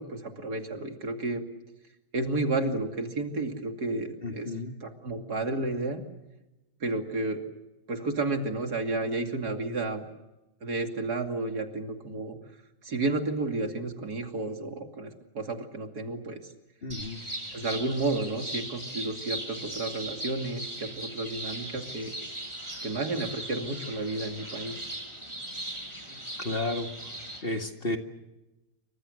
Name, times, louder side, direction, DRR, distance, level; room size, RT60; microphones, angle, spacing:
voice 1, 0.0-1.4 2.1-4.5 4.8-6.0 6.8-7.4 7.9-10.1 10.6-12.4 12.8-16.4 17.5-22.1 22.8-24.8 26.1-26.2, right 2 dB, 60° right, 5 dB, 3.1 m, -31 dB
voice 2, 4.2-4.7 16.8-17.2 26.4-28.0, left 2 dB, 30° left, 5 dB, 2.2 m, -33 dB
sound 1, 16.9-27.4, right 1 dB, 15° right, 8.1 m, -39 dB
28.5 x 25.0 x 6.6 m, 1.0 s
omnidirectional pair, 1.9 m